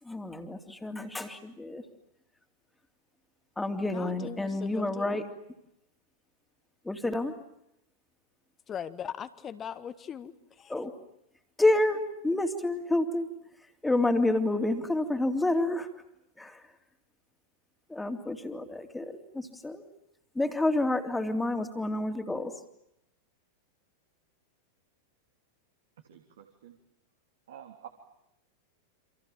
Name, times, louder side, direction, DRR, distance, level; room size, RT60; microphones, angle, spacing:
voice 1, 0.0-1.8 3.6-5.3 6.8-7.3 10.7-10.9 11.6-13.3 13.6-15.9 16.4-16.7 17.9-19.8 20.3-22.6, left 2 dB, 5° left, 6 dB, 3.2 m, -29 dB
voice 2, 3.9-5.1 8.7-10.7, left 8 dB, 25° left, 12 dB, 1.6 m, -40 dB
voice 3, 26.1-26.8 27.5-27.9, right 10 dB, 60° right, 4 dB, 3.5 m, -49 dB
29.5 x 27.5 x 7.4 m, 0.82 s
figure-of-eight pair, 90°, 0 cm